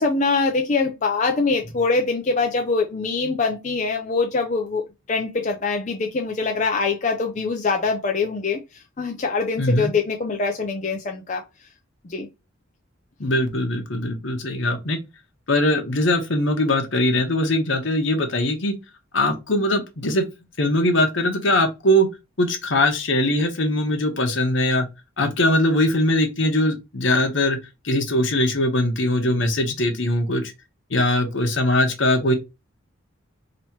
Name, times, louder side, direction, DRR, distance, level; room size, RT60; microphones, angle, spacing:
voice 1, 0.0-11.4 12.0-12.3, left 4 dB, 35° left, 0.5 m, -24 dB
voice 2, 9.6-9.9 13.2-15.0 15.5-18.8 19.1-20.3 20.6-22.1 22.4-24.9 25.2-27.6 27.8-30.5 30.9-32.3, left 1 dB, 65° left, 1.0 m, -21 dB
3.0 x 2.9 x 4.5 m
head